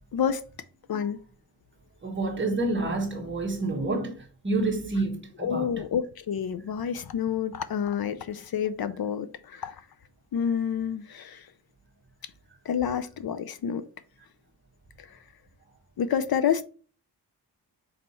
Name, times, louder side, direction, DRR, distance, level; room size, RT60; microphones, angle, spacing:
voice 1, 0.1-0.4 0.9-1.2 5.4-9.8 10.3-11.5 12.6-13.9 15.0-15.2 16.0-16.6, left 8 dB, 60° left, 0.5 m, -29 dB
voice 2, 2.0-5.8, right 2 dB, 25° right, 1.3 m, -29 dB
5.4 x 4.2 x 4.1 m
wide cardioid pair, 180°, 42 cm